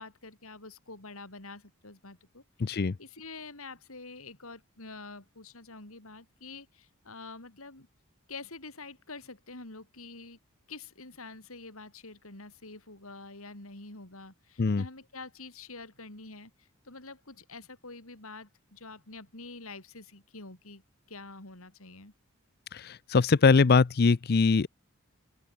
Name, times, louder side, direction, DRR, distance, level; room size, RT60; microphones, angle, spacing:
voice 1, 0.0-7.9 8.3-10.4 10.7-16.5 16.8-20.8 21.1-22.1, left 3 dB, 70° left, 4.7 m, -46 dB
voice 2, 2.6-2.9 14.6-14.8 22.7-24.7, left 4 dB, 45° left, 0.5 m, -22 dB
open air
head